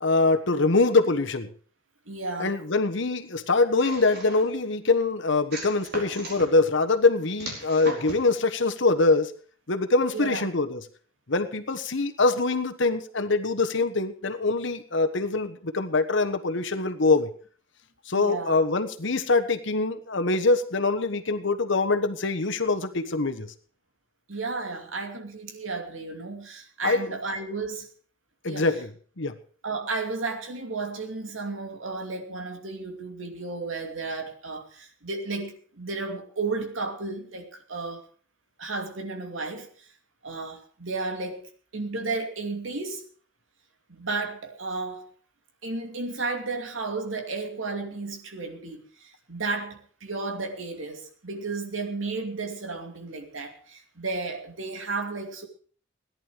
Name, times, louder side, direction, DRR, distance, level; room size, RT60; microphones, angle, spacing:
voice 1, 0.0-1.5 2.4-9.3 9.7-10.8 11.3-17.3 18.1-23.5 26.8-27.1 28.4-28.9 29.2-29.3, left 3 dB, 65° left, 8 dB, 1.3 m, -24 dB
voice 2, 2.1-2.5 10.1-10.4 18.1-18.6 24.3-27.9 28.5-28.7 29.6-38.0 38.6-39.9 40.2-43.0 43.9-45.1 45.6-55.5, right 3 dB, 80° right, 3 dB, 2.7 m, -33 dB
sound 1, 3.8-4.6 5.5-6.5 7.4-8.3, right 1 dB, 55° right, 4.6 m, -37 dB
17.5 x 11.0 x 5.1 m, 0.44 s
head